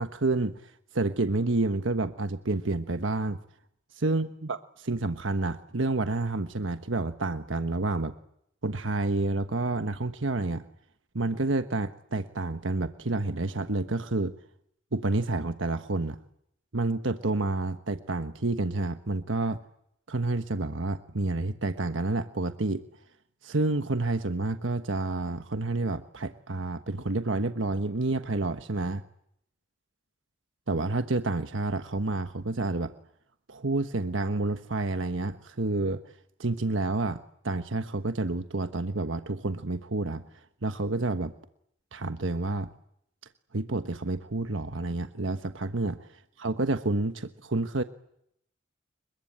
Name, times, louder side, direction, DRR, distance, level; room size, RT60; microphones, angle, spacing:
voice 1, 0.0-3.4 4.0-8.1 8.6-10.6 11.1-14.3 14.9-16.2 16.7-19.6 20.1-22.8 23.4-29.0 30.7-32.9 33.5-36.0 36.4-37.2 37.4-40.2 40.6-41.3 41.9-42.7 43.5-46.1 46.4-47.8, right 2 dB, 85° right, 9 dB, 1.3 m, -29 dB
28.5 x 23.0 x 8.9 m, 0.72 s
head